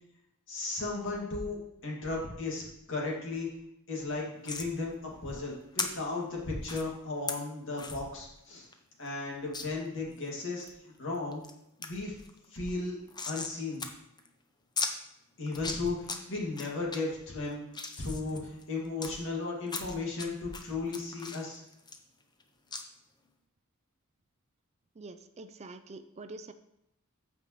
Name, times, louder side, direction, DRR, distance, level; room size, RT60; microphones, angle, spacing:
voice 1, 0.5-2.6 2.9-3.5 3.9-8.7 9.0-11.4 11.8-12.1 12.5-12.9 13.3-13.8 15.4-17.7 18.0-21.6, left 3 dB, 60° left, -3 dB, 2.3 m, -35 dB
sound 1, 4.4-4.7 5.8-5.9 6.6-6.8 7.3-7.4 7.8-8.0 8.4-8.5 8.7-8.8 9.5-9.7 10.2-10.7 11.1-11.5 11.8-11.9 12.2-13.5 13.8-13.9 14.2-14.3 14.8-14.9 15.5-16.2 16.5-17.0 17.4-19.1 19.7-20.3 20.5-22.4 22.7-22.8, left 4 dB, 20° left, 0.7 m, -36 dB
voice 2, 25.0-26.5, right 3 dB, 30° right, 9 dB, 0.4 m, -46 dB
14.0 x 5.2 x 3.2 m, 0.83 s
head